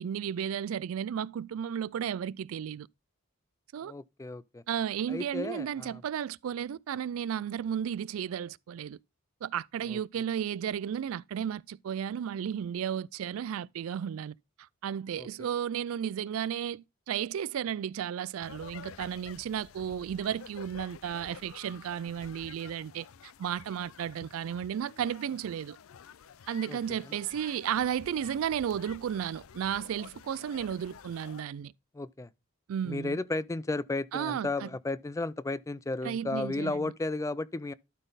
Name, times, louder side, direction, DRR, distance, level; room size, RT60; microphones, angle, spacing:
voice 1, 0.0-2.9 3.7-3.9 4.7-9.0 9.4-14.4 14.8-25.8 26.5-31.7 32.7-33.2 34.1-34.7 36.0-36.9, right 9 dB, 80° right, 0.3 m, -33 dB
voice 2, 3.8-4.6 5.1-6.0 9.9-10.0 15.2-15.5 26.7-27.0 31.9-32.3 32.9-37.7, left 2 dB, 15° left, 0.3 m, -34 dB
sound 1, 18.4-31.4, left 7 dB, 85° left, 0.5 m, -50 dB
12.0 x 4.1 x 4.0 m
head